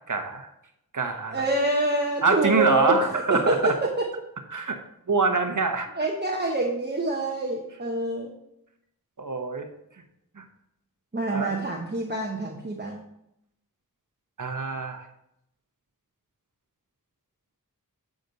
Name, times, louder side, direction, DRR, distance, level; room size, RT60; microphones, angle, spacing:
voice 1, 0.1-0.5 0.9-1.5 2.2-3.8 4.5-4.7 5.1-5.9 9.2-9.7 10.4-10.5 11.3-11.6 14.4-15.1, right 3 dB, 60° right, 5 dB, 1.1 m, -25 dB
voice 2, 1.3-4.1 6.0-8.3 11.1-13.0, right 2 dB, 30° right, 0 dB, 1.0 m, -26 dB
8.0 x 5.1 x 4.0 m, 0.79 s
wide cardioid pair, 50°, 35 cm